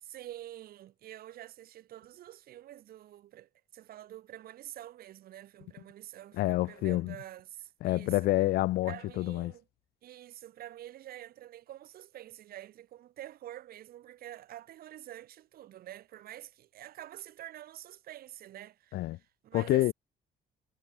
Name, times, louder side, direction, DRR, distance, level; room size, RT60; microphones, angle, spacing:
voice 1, 0.0-8.3 8.8-9.6 10.0-19.9, right 13 dB, 65° right, 1.4 m, -47 dB
voice 2, 6.4-7.1 7.8-9.5 18.9-19.2 19.5-19.9, left 17 dB, 70° left, 0.4 m, -28 dB
cardioid pair, 110°, 17 cm